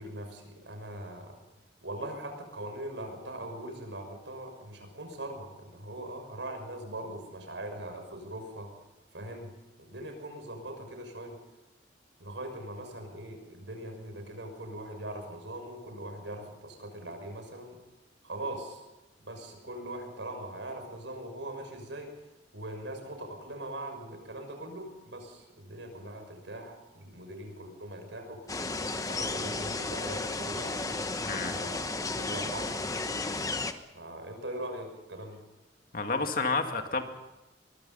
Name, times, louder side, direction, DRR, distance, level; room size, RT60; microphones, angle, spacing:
voice 1, 0.0-1.4 1.8-8.7 9.1-9.5 9.8-11.4 12.2-17.8 18.2-18.8 19.2-22.1 22.5-28.6 28.8-32.8 33.9-35.4, right 1 dB, 85° right, 4 dB, 6.2 m, -41 dB
sound 1, 28.5-33.7, left 3 dB, 20° left, 1.1 m, -33 dB
voice 2, 35.9-37.0, left 3 dB, 50° left, 5 dB, 2.2 m, -30 dB
23.0 x 23.0 x 5.6 m, 1.0 s
head